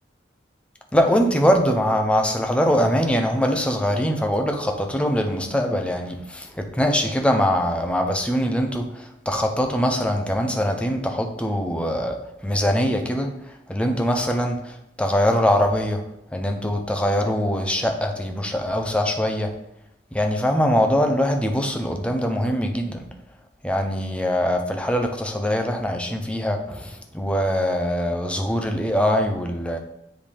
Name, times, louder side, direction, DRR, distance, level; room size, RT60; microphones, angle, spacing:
voice 1, 0.9-13.3 13.7-16.1 16.3-19.6 20.1-23.0 23.6-29.8, equal, 5° left, 4 dB, 0.6 m, -22 dB
9.8 x 3.4 x 3.4 m, 0.84 s
head